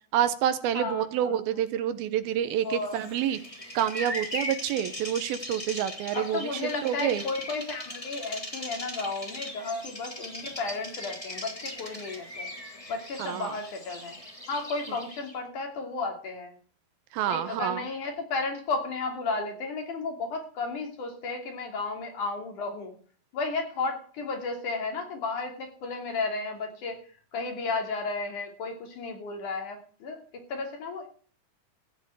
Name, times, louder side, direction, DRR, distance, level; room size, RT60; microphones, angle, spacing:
voice 1, 0.1-3.4 3.7-7.2 13.2-13.5 17.1-17.9, right 10 dB, 80° right, 11 dB, 2.8 m, -28 dB
voice 2, 0.7-1.4 2.6-3.0 6.1-12.5 12.9-14.2 14.5-16.5 17.3-22.9 23.3-27.0 27.3-30.2 30.5-31.1, left 3 dB, 55° left, 3 dB, 4.1 m, -33 dB
Bird vocalization bird call bird song, 2.7-15.4, left 1 dB, 10° left, 2.7 m, -39 dB
14.5 x 6.9 x 9.1 m, 0.44 s
omnidirectional pair, 4.4 m